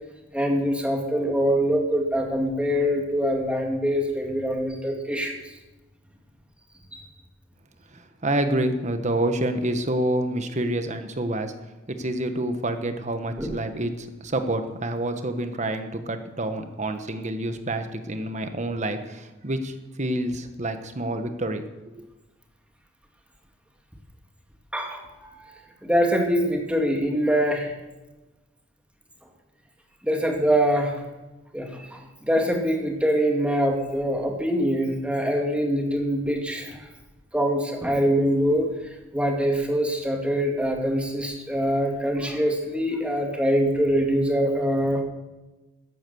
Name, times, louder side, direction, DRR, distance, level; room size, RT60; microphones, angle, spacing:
voice 1, 0.3-5.4 6.9-7.0 13.4-13.5 24.7-25.5 25.8-27.7 30.0-31.0 31.5-36.8 37.3-38.7 39.1-45.0, equal, 5° right, 1 dB, 2.2 m, -24 dB
voice 2, 7.9-11.5 11.9-21.7 21.9-22.0, right 1 dB, 40° right, 8 dB, 1.3 m, -28 dB
14.0 x 10.0 x 7.0 m, 1.1 s
head